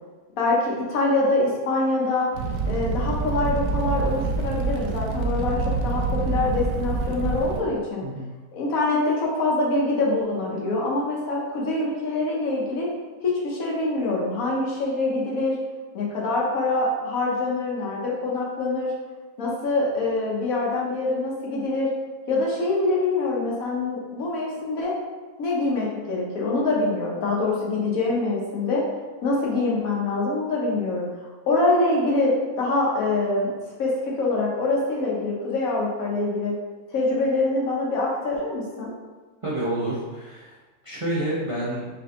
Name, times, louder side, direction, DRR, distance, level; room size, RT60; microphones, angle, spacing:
voice 1, 0.4-2.3 2.7-8.0 8.5-12.9 13.2-15.6 15.9-18.9 19.4-21.9 22.3-24.9 25.4-28.8 29.2-33.5 33.8-36.5 36.9-38.9, left 2 dB, 70° left, -3 dB, 1.3 m, -24 dB
Fire, 2.3-7.6, right 4 dB, 70° right, 0.9 m, -26 dB
voice 2, 39.4-40.5 40.8-41.9, right 1 dB, 40° right, -7 dB, 0.4 m, -28 dB
4.0 x 2.8 x 3.7 m, 1.3 s
omnidirectional pair, 1.6 m